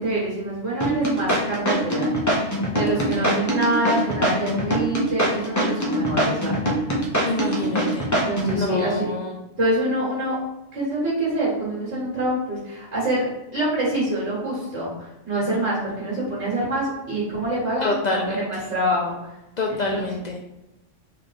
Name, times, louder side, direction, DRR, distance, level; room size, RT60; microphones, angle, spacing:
voice 1, 0.0-2.1 2.7-6.5 7.6-7.7 8.3-9.0 9.6-10.4 10.7-13.3 13.5-19.2 19.7-20.0, right 1 dB, 60° right, -7 dB, 1.8 m, -25 dB
sound 1, 0.8-8.6, right 1 dB, 20° left, 0.7 m, -23 dB
voice 2, 2.9-3.3 7.2-8.1 8.5-9.4 17.8-18.6 19.6-20.4, left 2 dB, 70° left, 0 dB, 0.4 m, -27 dB
3.3 x 3.2 x 4.0 m, 0.95 s
omnidirectional pair, 1.3 m